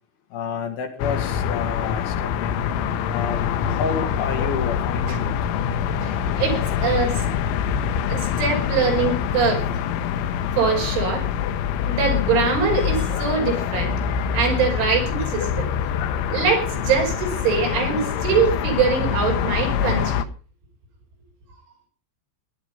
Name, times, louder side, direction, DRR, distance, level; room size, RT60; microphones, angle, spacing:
voice 1, 0.3-2.6 3.1-5.4, left 5 dB, 60° left, 5 dB, 3.6 m, -30 dB
sound 1, 1.0-20.2, left 8 dB, 80° left, 3.4 m, -25 dB
voice 2, 6.0-7.2 8.1-9.6 10.6-11.3 11.9-13.9 14.3-15.7 16.3-20.2, right 5 dB, 80° right, 2 dB, 7.7 m, -23 dB
19.0 x 11.0 x 5.4 m, 0.36 s
omnidirectional pair, 5.4 m